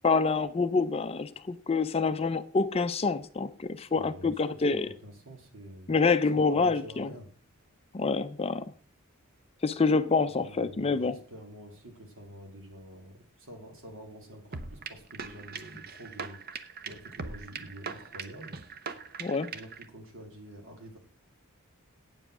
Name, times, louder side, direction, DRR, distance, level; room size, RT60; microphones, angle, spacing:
voice 1, 0.0-4.9 5.9-7.1 7.9-8.7 9.6-11.1 19.2-19.5, left 4 dB, 25° left, 0.5 m, -27 dB
voice 2, 3.9-5.9 6.3-7.3 10.3-16.4 16.8-18.6 19.5-21.0, equal, 65° right, 3.1 m, -47 dB
sound 1, 14.5-19.8, right 5 dB, 45° right, 0.9 m, -40 dB
9.0 x 7.5 x 6.0 m
head